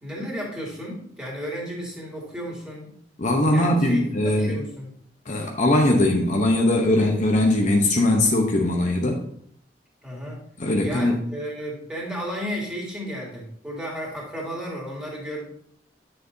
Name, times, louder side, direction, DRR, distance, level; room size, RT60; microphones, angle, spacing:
voice 1, 0.0-2.9 3.5-4.9 10.0-10.4 10.8-15.4, equal, 5° right, -4 dB, 2.8 m, -33 dB
voice 2, 3.2-4.6 5.3-9.2 10.6-11.2, left 1 dB, 45° left, 1 dB, 0.8 m, -20 dB
9.3 x 6.6 x 2.7 m, 0.66 s
head